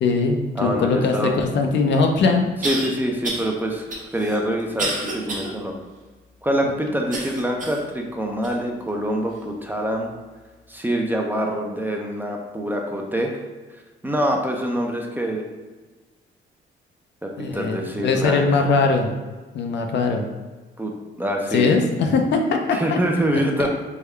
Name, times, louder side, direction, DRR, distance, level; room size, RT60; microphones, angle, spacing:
voice 1, 0.0-2.5 17.4-19.1 19.5-20.3 21.5-22.6 22.9-23.0, left 4 dB, 65° left, 4 dB, 0.5 m, -20 dB
voice 2, 0.6-1.3 2.6-3.8 4.1-5.7 6.4-10.1 10.7-13.4 14.0-15.5 17.2-18.7 20.8-21.7 22.7-23.7, equal, 10° right, 1 dB, 0.4 m, -25 dB
sound 1, 1.6-1.7 2.6-2.9 3.2-3.5 3.9-5.5 6.0-6.1 7.1-7.9 8.4-8.5 9.3-9.4, right 2 dB, 40° right, 0.9 m, -29 dB
3.6 x 2.2 x 3.2 m, 1.3 s
cardioid pair, 90°, 20 cm